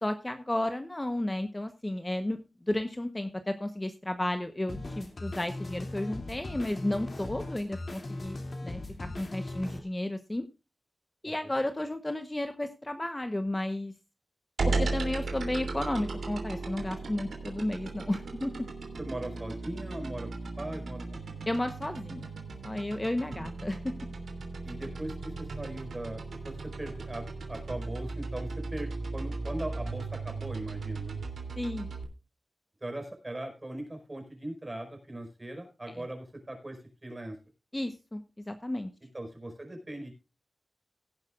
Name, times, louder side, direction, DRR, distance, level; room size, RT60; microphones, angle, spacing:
voice 1, 0.0-2.4 2.7-10.5 11.2-13.9 14.7-18.5 21.5-22.3 22.6-23.9 31.6-31.9 37.7-38.9, left 1 dB, 20° left, 8 dB, 1.0 m, -33 dB
sound 1, 4.7-9.8, left 2 dB, 50° left, 2.7 m, -39 dB
sound 2, 14.6-32.0, right 3 dB, 90° right, 3.0 m, -36 dB
voice 2, 19.0-20.3 20.6-21.4 23.2-23.5 24.6-31.2 32.8-37.4 39.1-40.1, right 1 dB, 25° right, 4 dB, 5.0 m, -40 dB
17.0 x 10.5 x 2.5 m, 0.29 s
wide cardioid pair, 75°, 0 cm